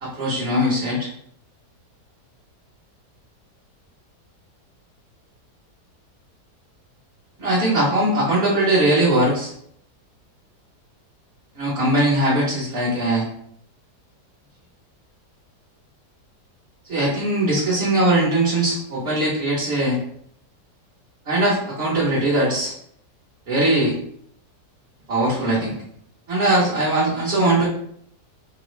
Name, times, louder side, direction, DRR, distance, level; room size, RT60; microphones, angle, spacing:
voice 1, 0.0-1.1 7.4-9.5 11.5-13.2 16.9-20.0 21.3-22.7 23.5-23.9 25.1-25.7 26.3-27.7, right 1 dB, 45° right, -7 dB, 1.0 m, -20 dB
3.8 x 2.0 x 3.1 m, 0.68 s
omnidirectional pair, 1.8 m